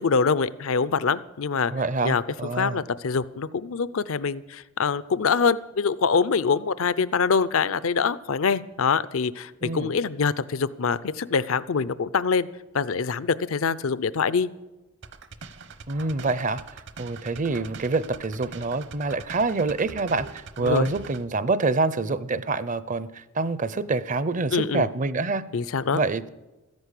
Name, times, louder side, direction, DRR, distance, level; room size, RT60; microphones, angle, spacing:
voice 1, 0.0-1.7 2.0-2.2 2.6-12.5 12.7-14.5 20.6-20.9 24.5-24.9 25.5-26.0, left 5 dB, 70° left, 18 dB, 0.5 m, -24 dB
voice 2, 1.7-2.8 9.6-9.9 15.9-25.4 25.9-26.3, right 3 dB, 35° right, 16 dB, 0.6 m, -26 dB
sound 1, 15.0-21.2, right 4 dB, 55° right, 1.0 m, -42 dB
14.0 x 10.5 x 8.3 m, 1.1 s
head